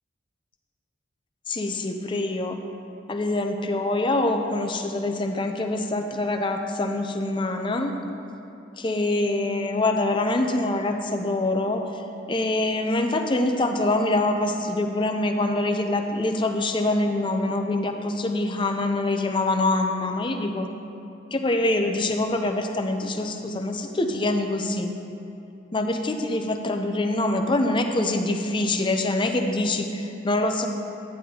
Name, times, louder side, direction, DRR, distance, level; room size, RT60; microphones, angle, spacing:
voice 1, 1.5-2.6 3.1-7.9 8.8-12.0 12.3-20.7 21.3-24.9 25.7-30.7, left 2 dB, 25° left, 5 dB, 0.5 m, -25 dB
11.0 x 10.5 x 2.8 m, 2.9 s
head